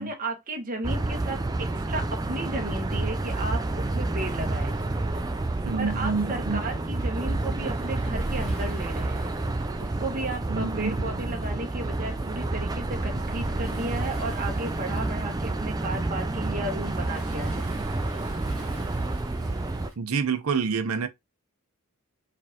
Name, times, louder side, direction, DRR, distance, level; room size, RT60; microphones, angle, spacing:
voice 1, 0.0-4.7 5.7-9.3 9.8-17.7, right 2 dB, 40° right, 1.2 m, -34 dB
sound 1, 0.8-19.9, right 2 dB, 15° right, 0.3 m, -29 dB
Waves surf, 1.6-19.9, right 1 dB, ahead, 2.6 m, -50 dB
voice 2, 5.6-6.7 10.5-11.3 20.0-21.1, right 5 dB, 75° right, 0.6 m, -28 dB
4.9 x 3.2 x 2.8 m
head